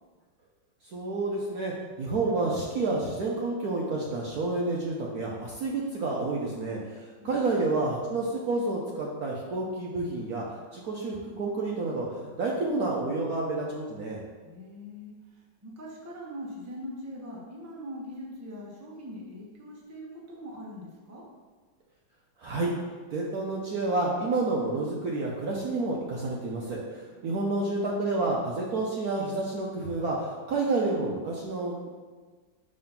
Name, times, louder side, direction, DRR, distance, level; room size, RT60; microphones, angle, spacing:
voice 1, 0.8-10.4 10.7-14.2 22.4-22.7 23.1-31.9, right 2 dB, 65° right, -2 dB, 1.0 m, -29 dB
voice 2, 14.4-21.2 27.2-27.5, equal, 10° right, -4 dB, 0.8 m, -42 dB
5.5 x 3.8 x 5.6 m, 1.4 s
omnidirectional pair, 2.1 m